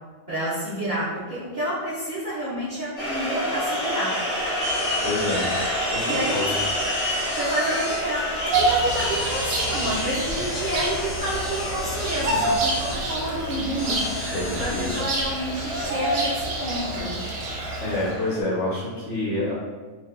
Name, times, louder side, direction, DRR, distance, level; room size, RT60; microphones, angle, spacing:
voice 1, 0.3-4.2 6.0-6.5 7.3-17.2, right 1 dB, 55° right, -11 dB, 0.5 m, -29 dB
sound 1, 3.0-18.4, equal, 35° left, 0.6 m, -30 dB
sound 2, 4.6-15.0, left 2 dB, 85° left, 1.1 m, -37 dB
voice 2, 5.0-5.5 5.9-6.6 12.3-12.4 14.3-14.9 17.8-19.5, left 2 dB, 65° left, -6 dB, 1.0 m, -27 dB
Bird vocalization bird call bird song, 8.5-18.1, right 2 dB, 75° right, 0.9 m, -28 dB
2.6 x 2.1 x 2.4 m, 1.4 s
omnidirectional pair, 1.5 m